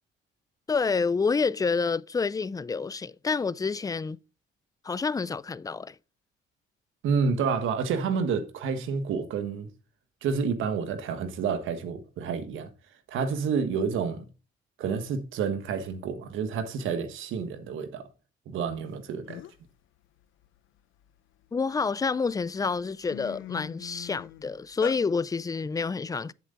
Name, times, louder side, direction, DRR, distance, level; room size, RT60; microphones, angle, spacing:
voice 1, 0.7-4.2 4.8-6.0 21.5-26.3, left 4 dB, 20° left, 0.4 m, -28 dB
voice 2, 7.0-9.7 10.2-12.7 13.1-14.3 14.8-18.0 18.5-19.4, right 6 dB, 85° right, 1.4 m, -29 dB
sound 1, 18.9-19.0 19.3-19.7 20.2-21.7 22.3-22.5 22.8-25.0, left 14 dB, 85° left, 0.6 m, -42 dB
8.1 x 7.6 x 3.9 m
cardioid pair, 90°, 20 cm